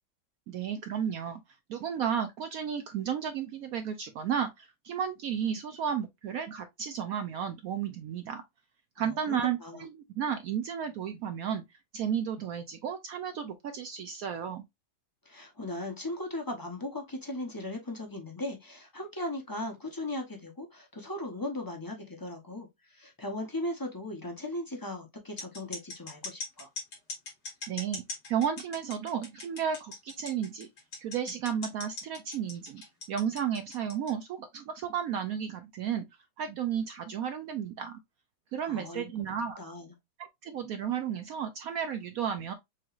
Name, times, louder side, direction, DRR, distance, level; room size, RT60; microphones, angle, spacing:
voice 1, 0.5-1.4 1.7-8.4 9.0-11.6 11.9-14.6 27.7-28.0 28.3-30.7 31.0-32.8 33.1-36.1 36.4-38.0 38.5-39.6 40.2-42.5, right 8 dB, 75° right, 0.8 m, -33 dB
voice 2, 9.0-9.8 15.3-26.7 38.7-39.0 39.6-39.9, left 1 dB, 20° left, 0.5 m, -38 dB
sound 1, 25.4-34.1, left 3 dB, 85° left, 2.9 m, -40 dB
6.2 x 3.0 x 2.4 m
omnidirectional pair, 2.0 m